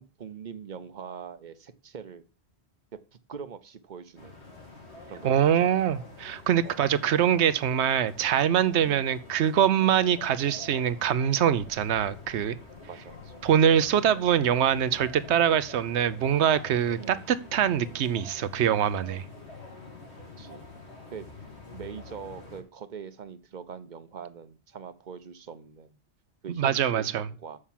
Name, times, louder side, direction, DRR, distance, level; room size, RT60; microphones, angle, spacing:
voice 1, 0.0-2.2 2.9-4.4 5.1-5.7 6.6-6.8 10.1-10.2 12.9-13.4 17.0-17.3 20.4-20.6 21.1-21.3 21.7-26.0 26.4-27.6, right 6 dB, 50° right, 13 dB, 0.8 m, -43 dB
sound 1, 4.2-22.6, left 3 dB, 80° left, 2.8 m, -47 dB
voice 2, 5.2-12.6 13.4-19.2 26.5-27.3, right 9 dB, 85° right, 14 dB, 1.0 m, -24 dB
7.0 x 6.5 x 7.3 m, 0.36 s
omnidirectional pair, 1.1 m